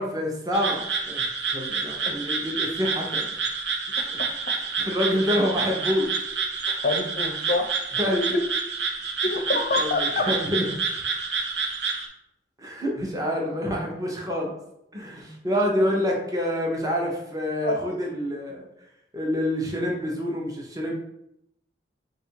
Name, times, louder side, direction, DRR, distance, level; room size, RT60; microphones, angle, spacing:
voice 1, 0.0-3.3 4.1-6.1 8.0-8.3 9.8-10.8 12.6-14.5 14.9-18.6 19.1-20.9, equal, 20° right, -1 dB, 0.7 m, -27 dB
sound 1, 0.5-12.1, right 5 dB, 75° right, 0.6 m, -28 dB
voice 2, 6.8-7.6 8.1-8.2 9.2-10.2 17.6-17.8, left 2 dB, 55° left, 3 dB, 0.5 m, -26 dB
3.7 x 2.5 x 4.3 m, 0.79 s
head